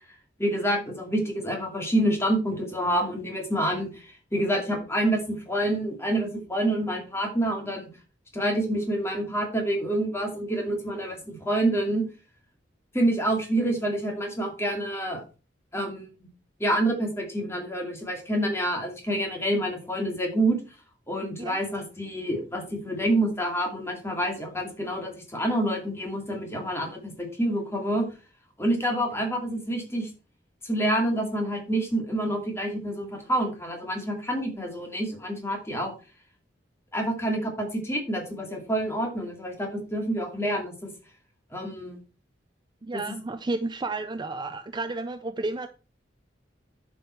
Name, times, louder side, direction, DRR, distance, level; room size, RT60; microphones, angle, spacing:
voice 1, 0.4-7.9 8.3-12.0 12.9-15.2 15.7-16.1 16.6-20.6 21.1-28.1 28.6-30.1 30.6-35.9 36.9-40.9 41.5-42.0 42.9-43.0, right 1 dB, 15° left, 2.4 m, -27 dB
voice 2, 42.8-45.7, right 2 dB, 25° right, 0.5 m, -32 dB
10.5 x 5.5 x 4.5 m
head